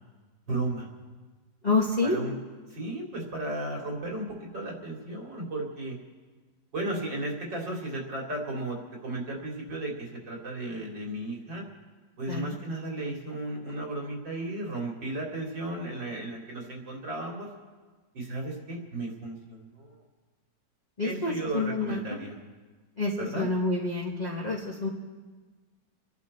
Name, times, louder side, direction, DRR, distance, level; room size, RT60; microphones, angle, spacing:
voice 1, 0.5-0.9 2.0-2.4 2.7-6.0 6.7-11.6 12.2-17.5 18.1-20.0 21.0-22.3 23.2-23.4, right 2 dB, 85° right, -1 dB, 3.6 m, -34 dB
voice 2, 1.6-2.2 12.3-12.6 21.0-22.0 23.0-24.9, left 3 dB, 25° left, -5 dB, 1.5 m, -28 dB
28.5 x 11.0 x 4.2 m, 1.4 s
omnidirectional pair, 2.0 m